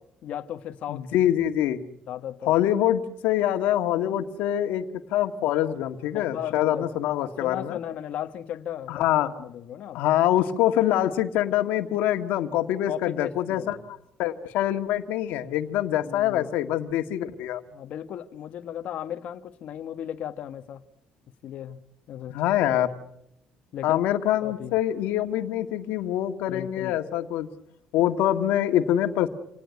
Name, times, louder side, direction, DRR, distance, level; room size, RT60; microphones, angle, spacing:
voice 1, 0.2-1.2 2.1-2.5 6.1-6.9 7.2-10.0 12.9-13.7 16.0-16.5 17.7-20.8 21.4-21.8 22.1-22.4 22.8-22.9 23.7-24.0 24.4-24.8 26.5-27.0, left 10 dB, 50° left, 1.2 m, -36 dB
voice 2, 0.9-1.8 2.5-4.9 5.1-7.8 8.9-9.3 9.9-13.8 14.2-17.6 22.3-22.9 23.8-27.5 27.9-29.3, left 12 dB, 85° left, 1.7 m, -24 dB
27.0 x 19.0 x 9.5 m
cardioid pair, 160°, 3 cm